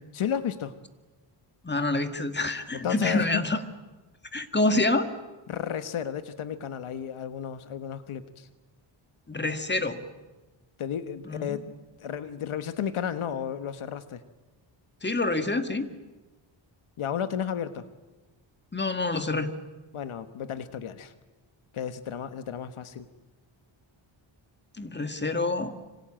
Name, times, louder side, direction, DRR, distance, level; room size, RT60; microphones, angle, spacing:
voice 1, 0.1-0.7 2.7-3.4 5.5-8.5 10.8-11.7 12.0-14.2 17.0-17.8 19.9-21.1 21.7-23.1, left 8 dB, 80° left, 11 dB, 1.4 m, -33 dB
voice 2, 1.6-3.6 4.3-5.1 9.3-10.0 11.3-11.6 15.0-15.9 18.7-19.5 24.8-25.7, left 2 dB, 20° left, 9 dB, 2.0 m, -27 dB
26.0 x 25.0 x 8.9 m, 1.2 s
cardioid pair, 100°, 49 cm